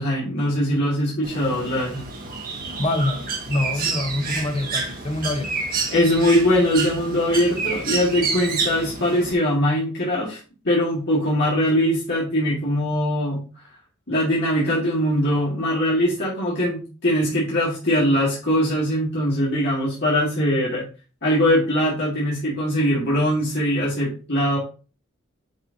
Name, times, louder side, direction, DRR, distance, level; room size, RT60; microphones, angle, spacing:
voice 1, 0.0-2.1 5.9-10.4 10.6-13.4 14.1-20.8 21.2-24.6, equal, 60° left, 2.1 m, -21 dB
Bird, 1.2-9.3, right 4 dB, 45° right, 1.6 m, -29 dB
voice 2, 2.8-5.7, left 1 dB, 30° left, 0.9 m, -25 dB
9.1 x 4.5 x 2.7 m
head